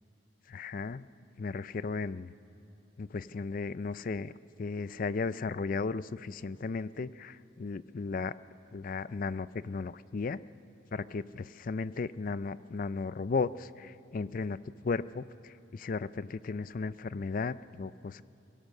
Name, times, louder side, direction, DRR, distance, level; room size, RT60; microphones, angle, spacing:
voice 1, 0.5-1.0 1.4-2.3 3.0-4.3 4.6-8.3 8.7-10.4 10.9-18.2, left 4 dB, 45° left, 17 dB, 0.4 m, -35 dB
23.0 x 17.0 x 6.6 m, 2.7 s
head